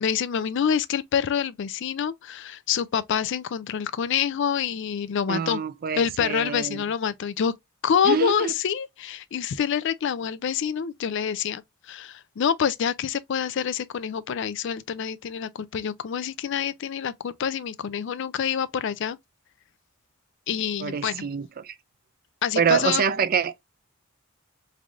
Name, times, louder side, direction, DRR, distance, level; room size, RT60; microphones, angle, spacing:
voice 1, 0.0-5.6 6.0-7.5 7.8-11.6 11.9-19.2 20.5-21.3 22.4-23.0, left 7 dB, 60° left, 0.4 m, -26 dB
voice 2, 5.3-6.8 8.0-8.5 20.8-21.8 22.6-23.6, right 7 dB, 45° right, 0.4 m, -26 dB
3.6 x 3.3 x 2.5 m
head